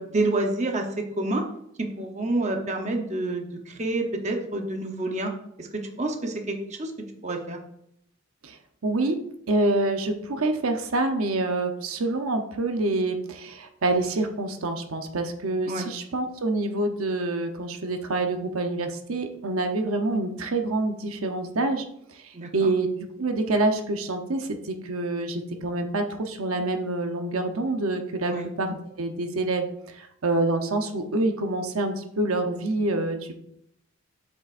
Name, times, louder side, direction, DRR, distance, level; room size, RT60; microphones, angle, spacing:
voice 1, 0.0-1.4 1.8-5.3 5.6-6.9 7.2-7.6 15.7-15.9 22.3-22.7 28.2-28.5, right 2 dB, 30° right, 3 dB, 0.8 m, -28 dB
voice 2, 8.8-9.2 9.5-21.8 22.1-22.9 23.2-33.3, right 2 dB, 80° right, 6 dB, 0.8 m, -27 dB
7.7 x 7.3 x 2.5 m, 0.75 s
head